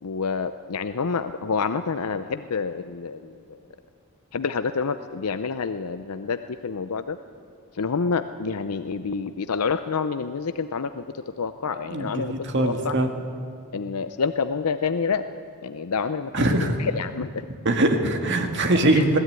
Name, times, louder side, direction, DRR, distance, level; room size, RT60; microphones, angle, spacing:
voice 1, 0.0-3.6 4.3-7.2 7.7-11.0 11.4-12.3 12.6-13.0 13.7-15.2 15.6-17.5 18.8-19.0, left 5 dB, 90° left, 10 dB, 0.6 m, -28 dB
voice 2, 11.9-13.1 16.3-16.8 17.7-19.2, right 2 dB, 55° right, 5 dB, 1.9 m, -22 dB
21.0 x 16.0 x 9.5 m, 2.4 s
head